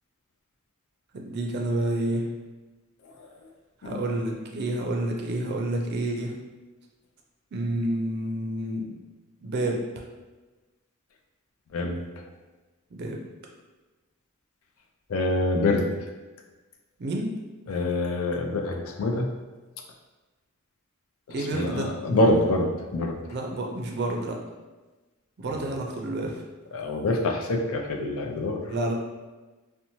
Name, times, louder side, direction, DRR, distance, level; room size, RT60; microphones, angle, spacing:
voice 1, 1.1-2.3 3.8-6.3 7.5-8.8 9.4-9.8 12.9-13.2 17.0-17.3 21.3-21.9 23.2-24.4 25.4-26.4 28.6-28.9, right 1 dB, 50° right, 0 dB, 0.4 m, -29 dB
voice 2, 11.7-12.3 15.1-15.9 17.7-19.3 21.4-23.2 26.7-28.7, left 2 dB, 80° left, 2 dB, 0.4 m, -26 dB
2.9 x 2.1 x 2.7 m, 1.2 s
head